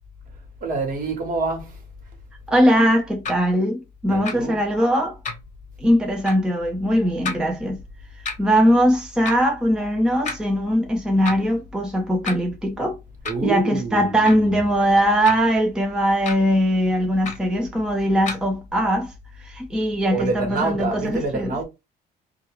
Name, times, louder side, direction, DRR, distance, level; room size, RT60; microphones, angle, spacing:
voice 1, 0.6-1.8 4.1-4.7 13.2-14.5 20.1-21.6, right 4 dB, 55° right, 1.1 m, -27 dB
voice 2, 2.5-5.2 5.8-7.8 8.4-13.0 13.4-19.1 19.4-21.5, equal, 5° right, 0.5 m, -20 dB
sound 1, 3.2-3.4 4.2-4.4 5.2-5.5 6.2-6.4 7.2-7.4 8.2-8.4 9.2-9.4 10.2-10.4 11.2-11.5 12.2-12.4 13.2-13.5 14.2-14.5 15.2-15.5 16.2-16.4 17.2-17.5 18.2-18.4, left 4 dB, 45° left, 0.9 m, -31 dB
2.3 x 2.2 x 3.1 m
cardioid pair, 110°, 17 cm